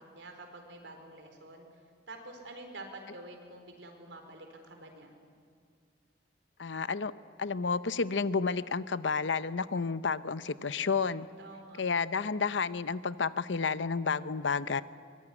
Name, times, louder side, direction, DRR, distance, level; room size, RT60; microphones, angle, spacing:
voice 1, 0.0-5.1 11.4-11.8, right 2 dB, 90° right, 4 dB, 4.6 m, -48 dB
voice 2, 6.6-7.1 7.4-11.3 11.8-14.8, left 5 dB, 85° left, 14 dB, 0.8 m, -31 dB
23.5 x 22.5 x 10.0 m, 2.1 s
head